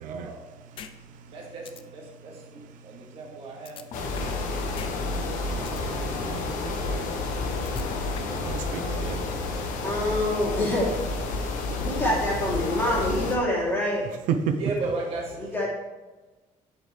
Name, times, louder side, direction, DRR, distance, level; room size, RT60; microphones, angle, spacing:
voice 1, 0.0-0.4 1.3-4.0 14.6-15.4, right 3 dB, 45° right, -2 dB, 2.3 m, -35 dB
sound 1, 0.8-0.9 1.3-1.4 1.7-1.8 3.7-4.4 4.8-4.9 5.3-5.8 7.7-8.4, left 8 dB, 40° left, 0.6 m, -41 dB
sound 2, 3.9-13.4, left 3 dB, 80° left, 1.6 m, -30 dB
voice 2, 5.8-7.1 8.4-9.2 14.3-14.4, right 9 dB, 85° right, 8 dB, 0.7 m, -33 dB
voice 3, 9.8-10.9 11.8-14.1 15.4-15.7, left 1 dB, 15° left, -6 dB, 3.1 m, -26 dB
11.0 x 7.7 x 3.4 m, 1.2 s
cardioid pair, 180°, 13 cm